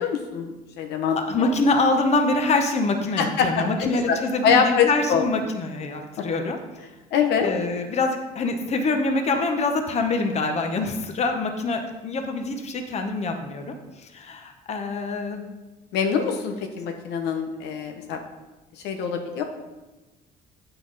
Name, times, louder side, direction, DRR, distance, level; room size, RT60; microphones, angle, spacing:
voice 1, 0.0-1.5 3.2-4.2 4.4-5.2 6.2-6.3 7.1-7.5 15.9-18.2 18.8-19.4, left 6 dB, 80° left, 4 dB, 0.9 m, -24 dB
voice 2, 1.1-6.6 7.4-15.4, left 3 dB, 40° left, 5 dB, 1.0 m, -25 dB
8.6 x 5.9 x 4.0 m, 1.1 s
cardioid pair, 110°, 17 cm